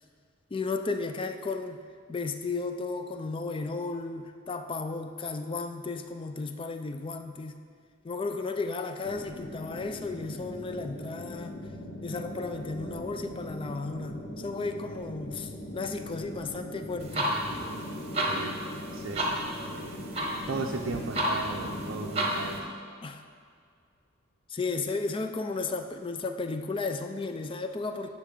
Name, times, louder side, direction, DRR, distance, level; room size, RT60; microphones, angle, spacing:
voice 1, 0.5-1.8 2.1-7.6 8.0-11.5 12.0-17.3 23.0-23.2 24.5-28.1, left 3 dB, 25° left, 7 dB, 0.4 m, -34 dB
sound 1, 9.0-22.6, equal, 75° left, 0.9 m, -40 dB
sound 2, 17.0-22.6, right 1 dB, 30° right, 0.9 m, -32 dB
voice 2, 18.2-18.6 18.9-19.3 19.6-20.1 20.5-22.6, right 3 dB, 65° right, 1 dB, 0.5 m, -36 dB
10.0 x 6.5 x 3.8 m, 2.2 s
head